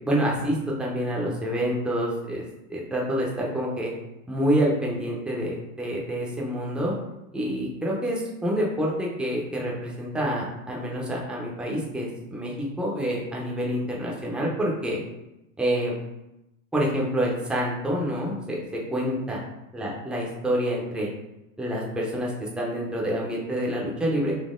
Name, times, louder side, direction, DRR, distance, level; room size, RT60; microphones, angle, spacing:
voice 1, 0.0-2.4 2.7-3.9 4.3-6.9 7.3-15.0 15.6-15.9 16.7-18.6 18.9-19.4 19.7-21.1 21.6-24.3, equal, ahead, -3 dB, 0.7 m, -27 dB
4.2 x 2.8 x 3.6 m, 0.91 s
supercardioid pair, 140°, 42 cm